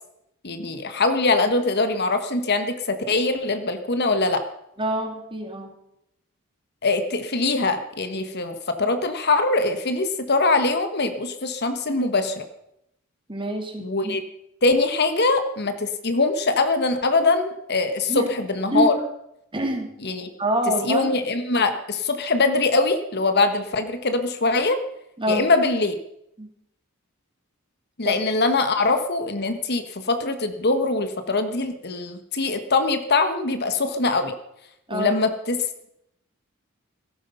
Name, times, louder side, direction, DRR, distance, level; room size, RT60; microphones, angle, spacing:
voice 1, 0.4-4.4 6.8-12.4 13.8-14.2 14.6-18.9 20.0-20.3 20.8-24.8 25.3-25.9 28.0-34.3 34.9-35.6, left 3 dB, 50° left, 9 dB, 1.4 m, -22 dB
voice 2, 4.8-5.8 13.3-14.2 18.1-18.3 18.7-18.9 19.5-19.9 20.4-21.1 25.2-25.5 26.4-26.5 28.0-28.2 34.9-35.1, right 1 dB, 25° right, 3 dB, 2.9 m, -26 dB
17.0 x 14.5 x 5.6 m, 0.81 s
head